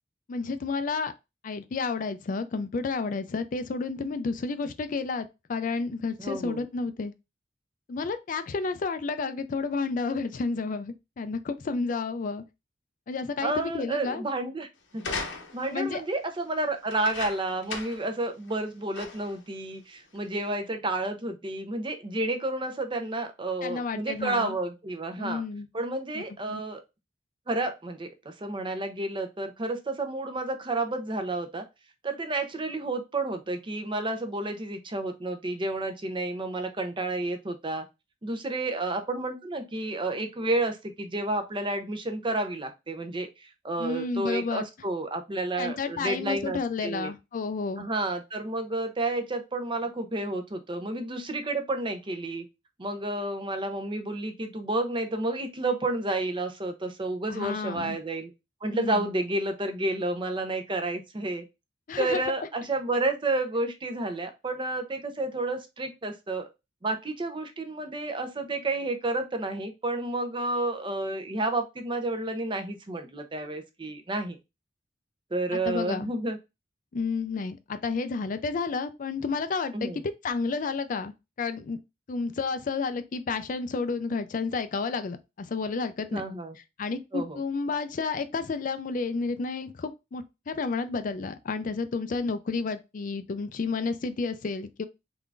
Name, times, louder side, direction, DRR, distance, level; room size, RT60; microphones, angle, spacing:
voice 1, 0.3-1.1 1.4-7.1 7.9-12.4 13.1-14.2 15.7-16.0 23.6-24.5 25.2-25.7 26.1-26.6 43.8-44.6 45.6-47.9 57.3-58.0 58.7-59.1 61.9-62.2 75.5-76.1 76.9-81.8 82.1-86.2 86.8-94.9, left 4 dB, 45° left, 0.4 m, -31 dB
voice 2, 6.2-6.6 13.4-14.7 14.9-15.0 15.5-25.4 25.7-26.8 27.5-31.6 32.0-37.9 38.2-43.3 43.6-47.1 47.8-52.4 52.8-58.3 58.6-61.4 62.0-66.5 66.8-74.4 75.3-76.4 79.7-80.0 86.1-86.6 87.1-87.4, right 2 dB, 25° right, 0.6 m, -30 dB
sound 1, 15.0-15.8 16.9-18.1 18.5-18.6 18.9-19.4 20.2-20.3, left 4 dB, 85° left, 0.9 m, -37 dB
3.7 x 3.4 x 2.4 m
head